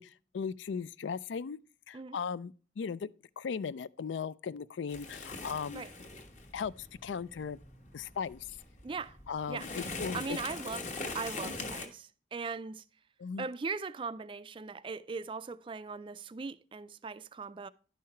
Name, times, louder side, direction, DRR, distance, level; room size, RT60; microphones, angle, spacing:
voice 1, 0.0-1.6 1.9-3.1 3.4-5.9 6.5-7.6 7.9-8.5 9.3-10.4 13.2-13.5, left 6 dB, 80° left, 0.4 m, -37 dB
sound 1, 4.9-11.9, left 3 dB, 40° left, 1.3 m, -42 dB
voice 2, 8.8-9.2 9.5-9.7 10.1-12.8 13.4-17.7, right 4 dB, 25° right, 0.3 m, -39 dB
11.0 x 5.6 x 4.3 m
head